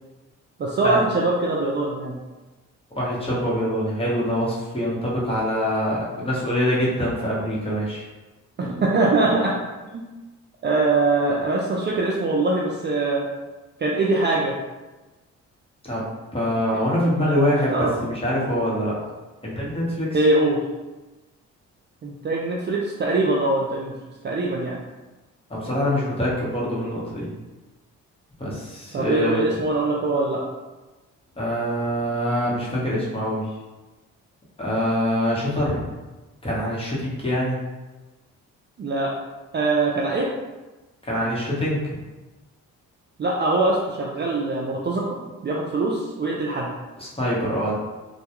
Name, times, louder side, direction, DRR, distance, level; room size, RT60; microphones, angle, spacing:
voice 1, 0.6-2.1 8.6-9.5 9.9-10.0 10.6-13.2 13.8-14.5 17.2-17.9 20.1-20.6 22.0-23.9 24.2-24.8 28.9-30.4 38.8-39.1 39.5-40.3 43.2-45.2 45.4-46.7, right 2 dB, 35° right, -3 dB, 0.4 m, -22 dB
voice 2, 2.9-8.0 15.8-16.0 16.3-19.0 19.4-20.2 25.5-27.3 28.4-29.4 31.4-33.5 34.6-35.8 36.4-37.6 41.0-41.8 47.0-47.7, equal, 15° left, -6 dB, 1.0 m, -24 dB
2.2 x 2.2 x 2.9 m, 1.2 s
cardioid pair, 65°, 33 cm